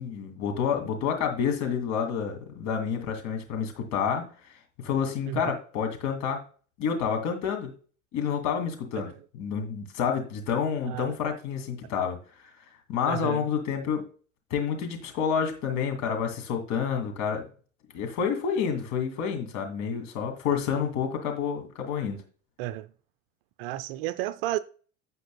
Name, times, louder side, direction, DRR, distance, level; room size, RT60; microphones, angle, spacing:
voice 1, 0.0-4.3 4.8-6.4 6.8-7.7 8.1-12.4 12.9-14.1 14.5-17.5 17.9-22.2, left 7 dB, 45° left, 2.4 m, -29 dB
voice 2, 13.1-13.5 22.6-22.9 23.6-24.6, right 14 dB, 45° right, 0.5 m, -32 dB
16.0 x 5.4 x 2.2 m
figure-of-eight pair, 75°, 39 cm